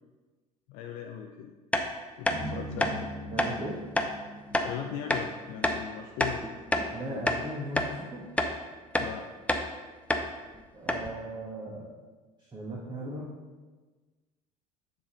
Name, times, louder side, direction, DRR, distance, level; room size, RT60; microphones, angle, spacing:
voice 1, 0.7-1.5 2.2-2.9 4.5-6.4 9.0-9.3, left 9 dB, 50° left, 3 dB, 0.6 m, -39 dB
sound 1, 1.7-1.9 2.3-2.4 2.8-2.9 3.4-3.5 4.0-4.1 4.5-4.7 5.1-5.3 5.6-5.8 6.2-6.9 7.3-7.4 7.8-7.9 8.4-8.6 8.9-9.1 9.5-9.7 10.1-10.3 10.5-10.6 10.9-11.1, left 1 dB, 5° left, 0.7 m, -27 dB
sound 2, 2.3-6.7, right 1 dB, 40° right, 1.4 m, -42 dB
voice 2, 2.7-3.8 6.7-8.3 10.7-11.9 12.5-13.3, right 1 dB, 20° right, -4 dB, 1.5 m, -38 dB
10.0 x 3.9 x 5.2 m, 1.3 s
figure-of-eight pair, 65°, 20 cm